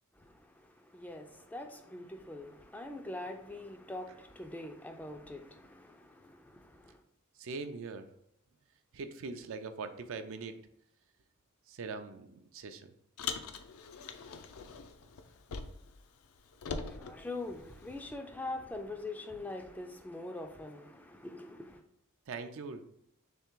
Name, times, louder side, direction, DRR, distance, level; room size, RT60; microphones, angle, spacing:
voice 1, 0.9-7.0 16.9-21.8, left 2 dB, 5° left, 0.3 m, -43 dB
voice 2, 7.4-8.1 8.9-10.6 11.7-12.9 22.3-22.9, right 4 dB, 65° right, 0.4 m, -42 dB
Car, 13.2-16.0 16.2-18.1, left 5 dB, 70° left, 0.4 m, -42 dB
3.5 x 3.2 x 4.5 m
head